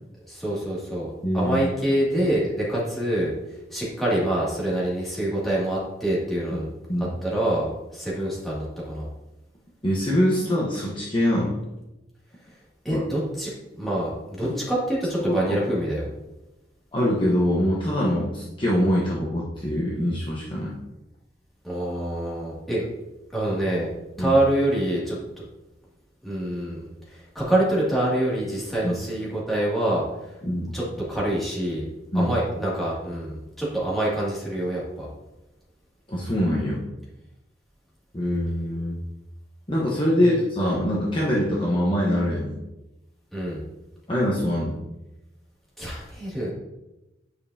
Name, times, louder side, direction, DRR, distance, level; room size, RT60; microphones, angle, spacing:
voice 1, 0.3-3.3 3.7-6.7 6.9-9.1 12.8-16.1 21.6-22.9 23.3-23.9 24.2-25.4 26.2-30.4 30.7-30.8 31.1-31.9 32.1-35.1 40.2-40.3 43.3-43.6 45.8-46.5, right 1 dB, ahead, -7 dB, 2.3 m, -26 dB
voice 2, 1.2-1.7 6.9-7.2 9.8-11.6 12.9-13.0 14.4-14.6 15.2-15.6 16.9-20.8 24.2-24.4 28.8-28.9 30.4-30.7 32.1-32.4 36.1-36.8 38.1-39.0 39.7-42.5 44.1-44.8, equal, 25° left, -5 dB, 1.1 m, -24 dB
9.6 x 5.3 x 2.7 m, 0.99 s
head